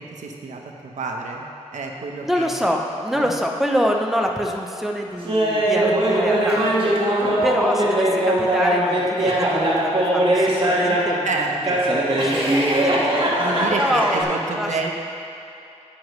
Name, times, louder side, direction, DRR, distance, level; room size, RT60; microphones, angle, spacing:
voice 1, 0.0-2.5 3.1-3.3 11.2-11.8 13.4-14.9, right 3 dB, 85° right, 1 dB, 0.9 m, -29 dB
voice 2, 2.2-7.0 7.4-11.6 11.8-13.2 13.7-14.9, equal, ahead, 1 dB, 0.7 m, -26 dB
Laughter, 5.3-11.2 11.6-14.2, right 1 dB, 45° right, 1.5 m, -20 dB
9.9 x 9.1 x 3.2 m, 2.7 s
wide cardioid pair, 155°, 12 cm